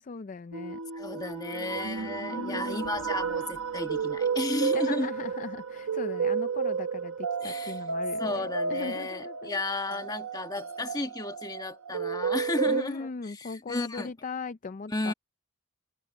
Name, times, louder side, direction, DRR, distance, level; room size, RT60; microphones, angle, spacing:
voice 1, 0.0-0.8 2.3-2.9 4.7-9.6 12.7-15.1, left 4 dB, 35° left, 0.4 m, -39 dB
sound 1, 0.5-12.8, right 5 dB, 70° right, 0.9 m, -32 dB
voice 2, 0.9-5.1 7.4-7.8 8.2-14.1 14.9-15.1, left 2 dB, 20° left, 1.4 m, -33 dB
head